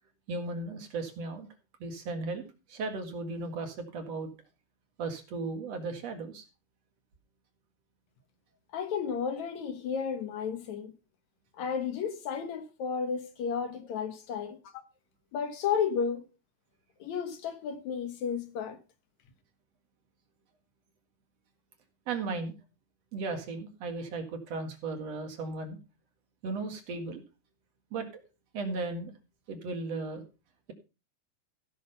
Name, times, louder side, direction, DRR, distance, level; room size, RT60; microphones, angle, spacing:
voice 1, 0.3-1.5 1.8-4.3 5.0-6.4 22.1-22.5 23.1-25.8 26.4-27.2 27.9-28.1 28.5-29.1 29.5-30.2, right 3 dB, 60° right, 2.8 m, -36 dB
voice 2, 8.7-10.9 11.6-14.6 15.3-16.3 17.0-18.8, left 7 dB, 70° left, 2.6 m, -32 dB
15.5 x 6.3 x 5.5 m
omnidirectional pair, 3.5 m